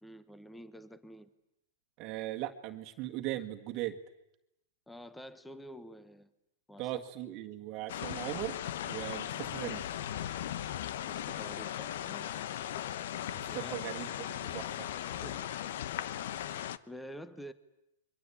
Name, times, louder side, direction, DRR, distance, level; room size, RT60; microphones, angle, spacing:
voice 1, 0.0-1.3 4.9-6.3 6.7-6.9 11.1-12.3 13.5-13.8 14.5-14.8 15.1-15.5 15.8-16.0 16.5-17.5, equal, 5° left, 14 dB, 1.1 m, -49 dB
voice 2, 2.0-4.0 6.8-9.8 13.3-14.9, right 14 dB, 35° right, 4 dB, 1.8 m, -39 dB
sound 1, 7.9-16.8, left 11 dB, 65° left, 0.9 m, -38 dB
29.0 x 23.5 x 8.7 m, 0.86 s
hypercardioid pair, 150°, 0 cm